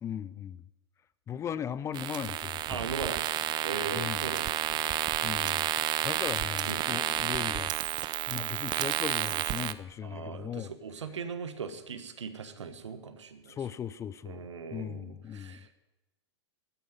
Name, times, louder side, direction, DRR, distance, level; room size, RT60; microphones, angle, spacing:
voice 1, 0.0-0.6 1.3-2.8 3.9-4.2 5.2-5.7 6.0-7.8 8.3-10.7 13.5-15.6, left 9 dB, 20° left, 18 dB, 0.4 m, -38 dB
sound 1, 1.9-9.7, right 13 dB, 30° right, 0.6 m, -31 dB
voice 2, 2.7-3.2 3.6-4.8 6.7-6.8 10.0-13.6 14.2-15.7, right 5 dB, 85° right, 9 dB, 1.4 m, -39 dB
12.5 x 9.4 x 7.5 m, 1.0 s
hypercardioid pair, 110°, 15 cm